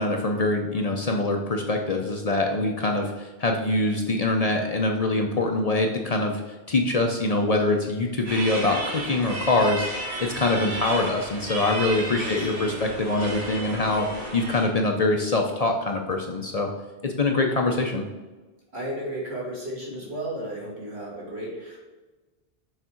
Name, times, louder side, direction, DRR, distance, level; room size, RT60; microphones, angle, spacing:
voice 1, 0.0-6.4 6.7-16.7 17.0-18.1, left 2 dB, 45° left, 2 dB, 0.6 m, -24 dB
sound 1, 8.2-14.7, right 1 dB, 35° right, 1.8 m, -33 dB
voice 2, 12.2-12.8 18.7-21.8, right 1 dB, 80° right, -4 dB, 2.3 m, -34 dB
6.5 x 3.6 x 4.4 m, 1.2 s
omnidirectional pair, 1.1 m